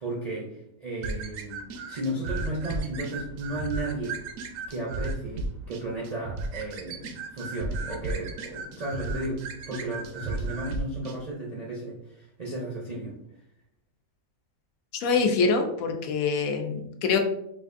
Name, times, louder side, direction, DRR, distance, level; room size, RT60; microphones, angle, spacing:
voice 1, 0.0-4.2 4.7-13.1, right 1 dB, 45° right, -4 dB, 0.5 m, -34 dB
sound 1, 1.0-11.2, right 3 dB, 75° right, 0.9 m, -35 dB
voice 2, 14.9-17.2, left 4 dB, 80° left, 4 dB, 1.0 m, -25 dB
4.6 x 2.5 x 2.5 m, 0.78 s
omnidirectional pair, 1.5 m